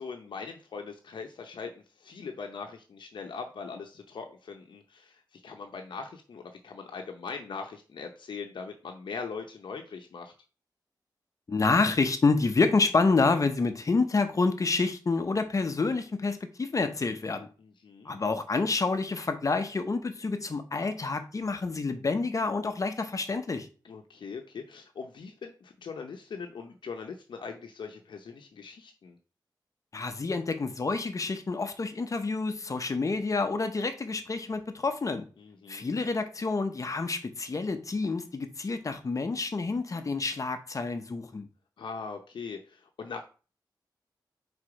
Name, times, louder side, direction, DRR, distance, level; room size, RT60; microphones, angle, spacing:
voice 1, 0.0-10.3 17.6-18.1 23.8-29.2 35.4-35.9 41.8-43.2, left 5 dB, 85° left, 0.7 m, -41 dB
voice 2, 11.5-17.5 18.0-23.7 29.9-35.3 35.7-41.5, left 3 dB, 45° left, 0.8 m, -28 dB
4.8 x 4.3 x 4.8 m
wide cardioid pair, 90°, 8 cm